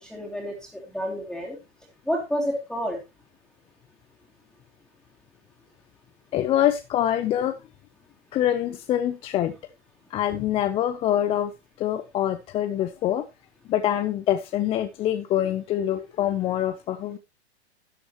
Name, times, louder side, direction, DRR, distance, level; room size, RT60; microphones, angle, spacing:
voice 1, 0.0-1.6 2.1-3.0, equal, ahead, -6 dB, 2.7 m, -29 dB
voice 2, 6.3-7.6 8.3-9.5 10.1-11.5 11.8-13.3 13.7-17.2, left 11 dB, 15° left, 10 dB, 0.5 m, -25 dB
12.5 x 9.7 x 2.9 m, 0.24 s
hypercardioid pair, 120°, 33 cm